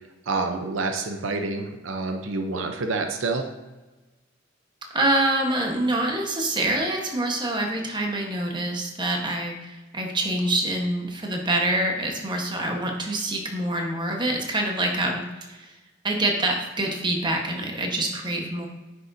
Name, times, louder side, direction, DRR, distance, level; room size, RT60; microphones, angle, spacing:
voice 1, 0.3-3.5, right 3 dB, 75° right, 5 dB, 0.7 m, -28 dB
voice 2, 4.9-15.7 16.0-18.7, right 1 dB, 25° right, 1 dB, 1.2 m, -26 dB
9.4 x 6.5 x 2.7 m, 1.2 s
head